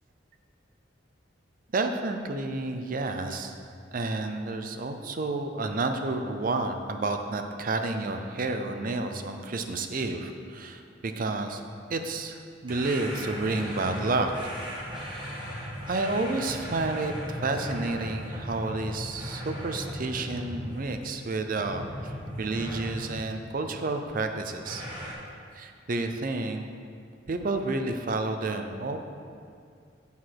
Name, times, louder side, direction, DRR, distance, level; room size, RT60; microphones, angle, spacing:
voice 1, 1.7-3.6 3.9-11.6 11.9-14.3 15.9-24.8 25.5-26.7 27.3-29.0, right 3 dB, 50° right, 6 dB, 0.6 m, -30 dB
sound 1, 12.7-21.2 21.6-23.3 24.7-25.1, equal, 25° right, 1.6 m, -37 dB
8.2 x 4.8 x 5.9 m, 2.3 s
head